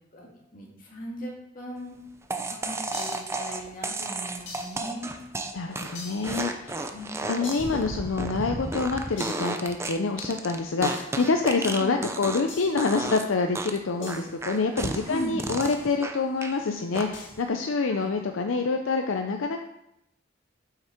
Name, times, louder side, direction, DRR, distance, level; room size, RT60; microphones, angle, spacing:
voice 1, 0.1-2.0 2.6-5.2 6.9-7.6 11.8-12.0 15.1-15.4 17.9-18.3, left 1 dB, 45° left, -2 dB, 2.0 m, -38 dB
sound 1, 2.3-12.5 12.8-13.3 13.6-16.6 16.9-17.4, right 2 dB, 15° right, 0.5 m, -33 dB
sound 2, 2.9-3.4 4.5-4.9 5.9-6.4 7.4-7.8 9.2-9.6 10.8-11.2 12.5-12.8 14.0-14.3 15.6-15.9 17.1-17.4, left 3 dB, 65° left, 2.2 m, -42 dB
voice 2, 5.5-6.9 7.3-19.6, left 4 dB, 85° left, 4 dB, 0.6 m, -27 dB
8.0 x 5.7 x 4.4 m, 0.83 s
head